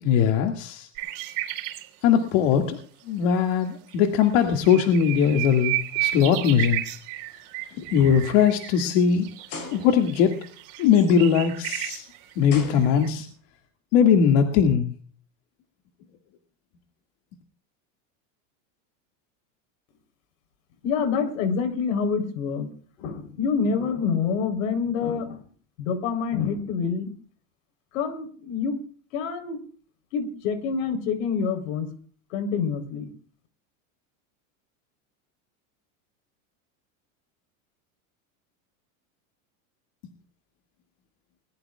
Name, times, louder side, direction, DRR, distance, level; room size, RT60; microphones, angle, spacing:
voice 1, 0.0-0.9 2.0-2.8 3.1-6.8 7.8-9.3 9.7-10.4 10.8-12.0 12.4-13.3 13.9-14.8, left 7 dB, 60° left, 3 dB, 2.3 m, -20 dB
sound 1, 1.0-1.9 3.3-3.4 3.9-4.0 4.2-13.1, right 16 dB, 65° right, 3.9 m, -33 dB
sound 2, 6.3-6.6 7.1-7.3 8.0-8.1 9.5-10.2 11.7-11.8 12.5-13.4, left 4 dB, 40° left, 7.7 m, -39 dB
voice 2, 20.8-22.7 23.0-25.4 25.8-27.1 27.9-28.8 29.1-29.6 30.1-31.9 32.3-33.1, left 6 dB, 80° left, 7 dB, 4.1 m, -26 dB
21.0 x 20.5 x 2.4 m, 0.43 s
supercardioid pair, 145°, 40 cm